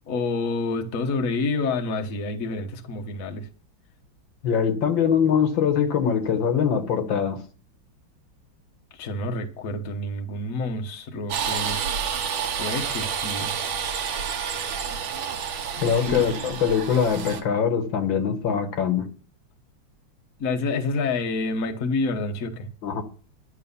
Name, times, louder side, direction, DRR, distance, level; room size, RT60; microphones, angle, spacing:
voice 1, 0.1-3.5 8.9-11.8 12.6-13.5 15.8-16.2 20.4-22.7, left 3 dB, 50° left, 1.4 m, -28 dB
voice 2, 4.4-7.4 15.8-19.1 22.8-23.0, left 7 dB, 70° left, 1.9 m, -23 dB
sound 1, 11.3-17.4, right 7 dB, 75° right, 1.9 m, -29 dB
11.0 x 7.5 x 5.5 m
omnidirectional pair, 2.2 m